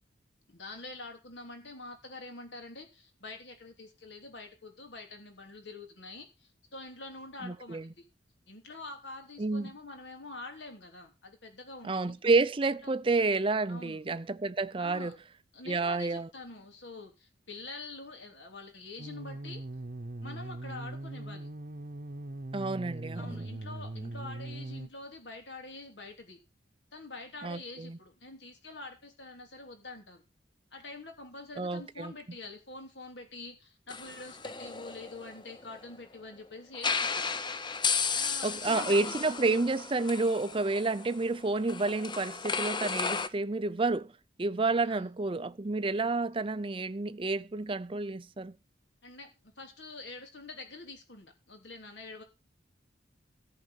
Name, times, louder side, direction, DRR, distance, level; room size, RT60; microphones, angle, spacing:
voice 1, 0.5-8.0 8.5-12.1 12.8-12.9 13.7-14.0 14.8-15.1 15.5-19.6 20.2-21.5 23.1-26.4 26.9-30.2 30.7-37.3 38.1-39.4 44.8-45.1 49.0-52.2, left 3 dB, 70° left, 3.2 m, -46 dB
voice 2, 7.4-7.9 9.4-9.7 11.8-15.1 15.7-16.3 22.5-23.5 27.4-28.0 31.6-32.1 38.4-44.1 44.4-48.5, right 3 dB, 30° right, 0.5 m, -30 dB
sound 1, 19.0-24.9, right 2 dB, 50° right, 0.9 m, -40 dB
sound 2, 33.9-36.0 36.7-43.3, left 5 dB, 25° left, 0.7 m, -34 dB
14.0 x 4.8 x 8.2 m
head